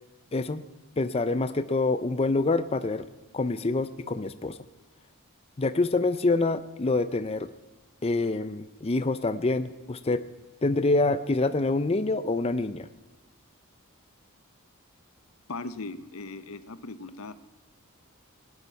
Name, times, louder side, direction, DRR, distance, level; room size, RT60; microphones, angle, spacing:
voice 1, 0.3-0.6 1.0-3.1 3.3-4.6 5.6-7.5 8.0-10.2 10.6-12.9, left 3 dB, 30° left, 12 dB, 0.5 m, -26 dB
voice 2, 15.5-17.3, left 3 dB, 80° left, 13 dB, 0.9 m, -38 dB
19.5 x 9.8 x 5.7 m, 1.1 s
head